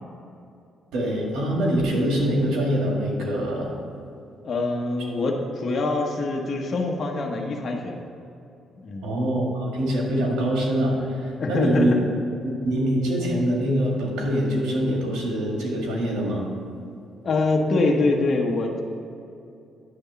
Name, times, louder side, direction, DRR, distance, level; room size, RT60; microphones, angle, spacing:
voice 1, 0.9-3.8 9.0-12.0 12.6-16.4, equal, 90° right, -1 dB, 1.8 m, -24 dB
voice 2, 4.4-8.0 8.8-9.1 11.4-12.0 17.2-18.8, left 3 dB, 45° left, 0 dB, 1.0 m, -24 dB
9.6 x 3.5 x 6.9 m, 2.6 s
cardioid pair, 90°, 0 cm